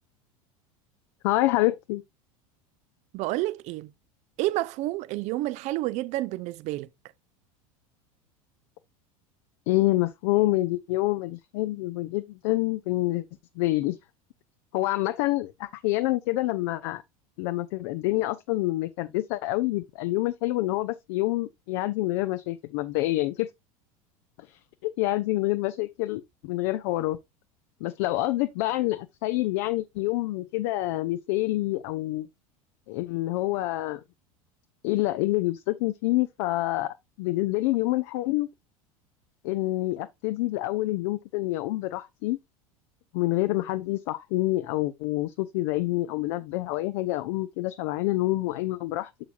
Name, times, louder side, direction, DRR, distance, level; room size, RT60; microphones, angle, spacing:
voice 1, 1.2-2.0 9.7-13.2 13.6-14.0 14.7-17.0 17.4-23.5 24.5-27.2 27.8-32.3 32.9-34.0 34.8-38.5 39.4-42.4 43.1-49.1, left 18 dB, 50° left, 0.5 m, -27 dB
voice 2, 3.1-3.9 4.4-6.9, right 17 dB, 40° right, 0.5 m, -29 dB
8.7 x 6.9 x 2.4 m
figure-of-eight pair, 80°, 19 cm